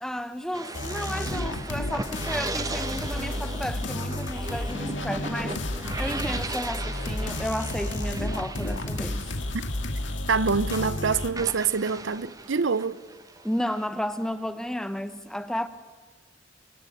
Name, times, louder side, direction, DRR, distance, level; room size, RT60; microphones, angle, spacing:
voice 1, 0.0-5.6 6.0-9.3 13.4-15.7, equal, 5° left, 1.0 m, -32 dB
sound 1, 0.5-10.4 10.7-14.5, right 2 dB, 20° right, 1.0 m, -38 dB
sound 2, 0.7-11.3, left 1 dB, 70° left, 2.1 m, -32 dB
voice 2, 10.3-13.0, right 5 dB, 75° right, 0.7 m, -25 dB
24.0 x 23.5 x 9.2 m
head